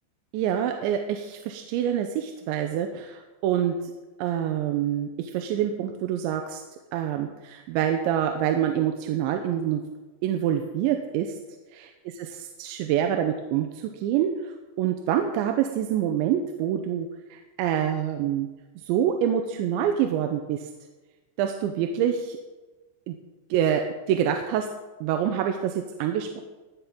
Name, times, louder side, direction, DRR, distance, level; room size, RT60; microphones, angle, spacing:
voice 1, 0.3-3.7 4.2-6.6 6.9-9.8 10.2-11.4 11.7-11.9 12.6-18.5 18.9-20.6 21.4-22.4 23.1-23.2 23.5-24.7 25.0-26.4, right 9 dB, 85° right, 5 dB, 3.1 m, -26 dB
18.5 x 12.5 x 3.8 m, 1.2 s
omnidirectional pair, 5.2 m